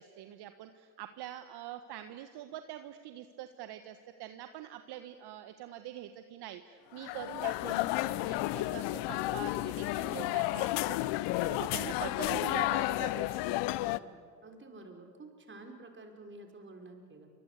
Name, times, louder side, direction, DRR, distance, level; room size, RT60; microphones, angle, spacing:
voice 1, 0.0-11.0 11.4-13.6, right 12 dB, 50° right, 8 dB, 1.6 m, -44 dB
sound 1, 7.0-14.0, left 18 dB, 55° left, 1.0 m, -32 dB
voice 2, 13.8-17.3, right 2 dB, 25° right, 3 dB, 5.4 m, -50 dB
28.0 x 25.0 x 8.3 m, 2.1 s
hypercardioid pair, 80°, 50 cm